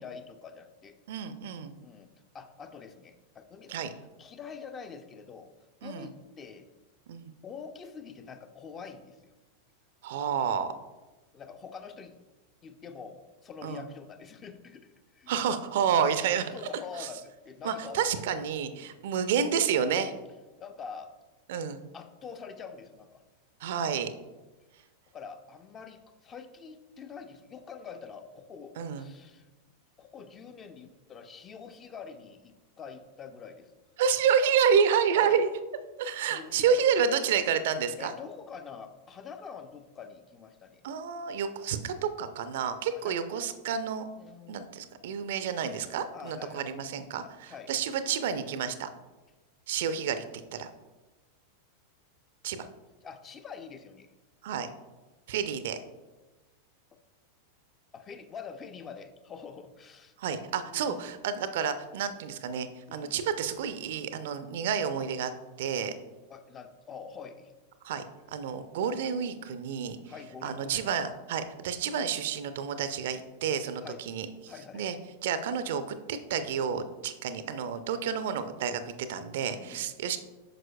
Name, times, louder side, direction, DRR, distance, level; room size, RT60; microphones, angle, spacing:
voice 1, 0.0-1.0 1.8-3.8 4.2-5.5 5.8-6.7 7.4-9.3 11.3-12.2 12.6-15.3 16.5-18.2 18.7-19.0 20.1-20.3 20.6-21.1 21.9-23.2 25.1-29.5 30.0-33.7 35.1-35.4 36.2-36.8 38.0-40.8 42.8-43.1 44.2-44.6 46.1-46.7 47.2-47.8 48.0-48.1 52.5-52.7 53.0-54.1 57.9-60.1 60.7-61.1 62.9-63.2 66.3-67.5 70.1-70.8 73.8-74.0 74.5-74.9 79.5-80.0, left 6 dB, 25° left, 8 dB, 0.5 m, -45 dB
voice 2, 1.1-1.7 3.7-3.9 5.8-6.1 7.1-7.3 10.0-10.7 13.6-13.8 15.3-16.5 17.0-17.1 17.6-20.1 21.5-21.8 23.6-24.1 28.8-29.1 34.0-35.5 36.0-38.1 40.8-44.1 44.5-48.9 49.7-50.2 50.5-50.7 52.4-52.7 54.4-54.7 55.3-55.8 60.2-65.3 65.6-65.9 67.8-70.0 70.4-74.9 75.2-80.2, right 7 dB, 55° right, 11 dB, 0.5 m, -29 dB
8.9 x 6.1 x 2.2 m, 1.1 s
figure-of-eight pair, 90°, 0 cm